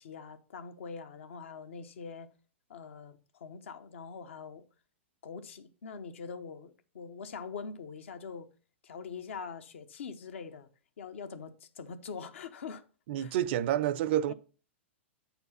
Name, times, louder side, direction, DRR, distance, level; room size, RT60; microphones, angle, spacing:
voice 1, 0.0-2.3 2.7-4.6 5.2-8.5 8.8-10.7 11.0-12.8 13.2-13.4 14.3-14.4, left 5 dB, 75° left, 0.9 m, -43 dB
voice 2, 13.1-14.3, right 11 dB, 55° right, 0.5 m, -28 dB
7.8 x 4.4 x 5.5 m
hypercardioid pair, 120°, 7 cm